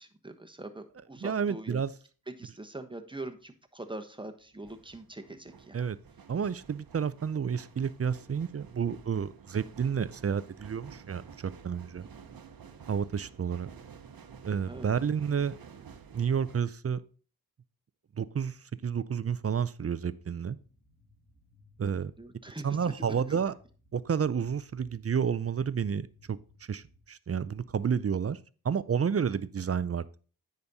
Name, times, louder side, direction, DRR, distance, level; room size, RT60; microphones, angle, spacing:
voice 1, 0.0-1.8 2.4-5.8 14.7-14.9 21.8-23.4, right 2 dB, 15° right, 7 dB, 1.1 m, -43 dB
voice 2, 1.2-1.9 5.7-6.0 6.3-12.1 12.9-13.7 14.4-15.8 16.1-17.0 18.2-18.6 18.8-20.6 21.8-22.1 22.6-23.5 23.9-26.4 26.7-28.4 28.6-30.2, right 7 dB, 40° right, 17 dB, 0.5 m, -30 dB
sound 1, 3.4-3.5 4.4-16.6, right 6 dB, 70° right, 1.0 m, -51 dB
sound 2, 20.0-27.1, left 1 dB, 25° left, 4.6 m, -63 dB
9.4 x 5.2 x 4.1 m, 0.39 s
cardioid pair, 60°, 37 cm